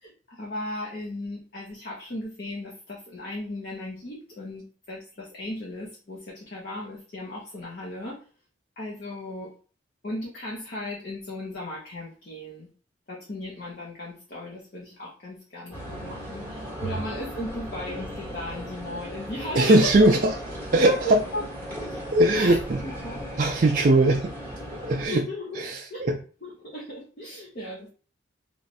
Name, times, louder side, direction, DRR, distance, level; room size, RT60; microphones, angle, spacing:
voice 1, 0.0-8.2 8.8-9.5 10.0-12.7 13.1-20.4 20.8-21.4 22.3-23.2 25.1-25.6 25.9-26.1 26.4-27.9, left 1 dB, 55° left, -4 dB, 0.9 m, -36 dB
sound 1, 15.7-25.1, equal, 10° left, 1.3 m, -37 dB
voice 2, 19.5-20.3 20.7-21.2 22.1-22.8 23.4-24.3 24.7-25.3 25.5-26.2, right 2 dB, 45° right, 2 dB, 0.4 m, -20 dB
3.1 x 2.5 x 4.1 m, 0.39 s
head